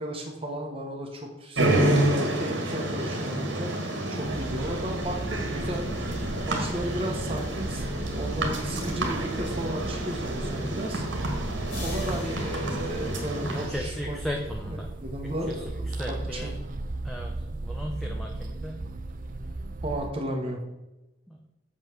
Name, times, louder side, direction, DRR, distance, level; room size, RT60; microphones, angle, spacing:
voice 1, 0.0-3.7 4.1-5.9 6.5-7.8 8.2-11.0 11.8-14.2 14.7-16.5 19.8-20.6, equal, 30° right, 1 dB, 1.3 m, -34 dB
sound 1, 1.6-13.7, right 1 dB, 85° right, 1.9 m, -29 dB
sound 2, 4.2-20.1, right 2 dB, 45° right, 0.5 m, -36 dB
sound 3, 11.7-14.4, left 1 dB, 85° left, 3.3 m, -44 dB
voice 2, 13.4-14.9 15.5-16.5 17.0-18.9 21.3-21.4, equal, ahead, 0 dB, 0.8 m, -36 dB
7.4 x 5.4 x 6.2 m, 0.97 s
head